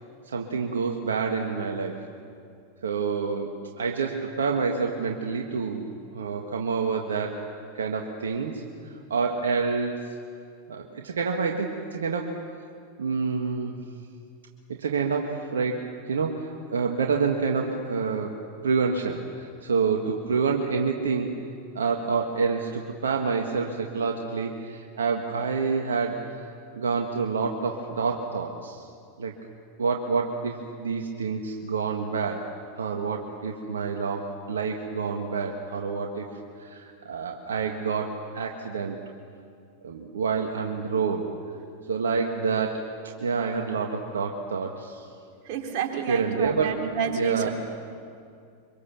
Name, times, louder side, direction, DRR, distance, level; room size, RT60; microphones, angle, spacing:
voice 1, 0.3-2.0 2.8-7.5 7.7-10.0 10.7-12.3 13.0-13.8 14.7-18.3 18.6-21.3 21.8-28.9 29.2-29.3 29.8-32.5 32.8-36.3 36.6-39.0 39.8-41.3 41.9-42.8 43.2-45.1 46.1-46.7 47.2-47.5, right 5 dB, 80° right, 2 dB, 1.8 m, -28 dB
voice 2, 45.5-47.5, right 7 dB, 55° right, 2 dB, 3.6 m, -29 dB
25.0 x 24.5 x 7.1 m, 2.3 s
hypercardioid pair, 95°, 0 cm